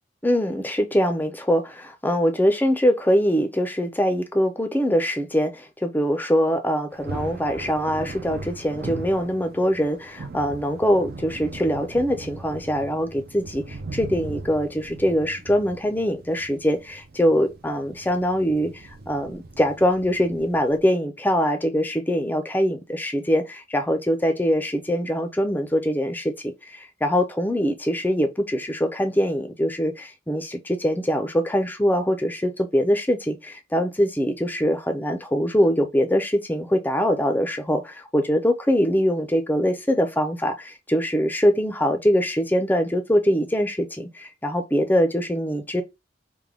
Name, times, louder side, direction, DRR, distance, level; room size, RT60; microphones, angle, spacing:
voice 1, 0.2-45.8, equal, 10° left, 0.5 m, -23 dB
Thunder, 6.9-20.8, right 3 dB, 50° right, 0.5 m, -39 dB
3.3 x 2.2 x 3.6 m
head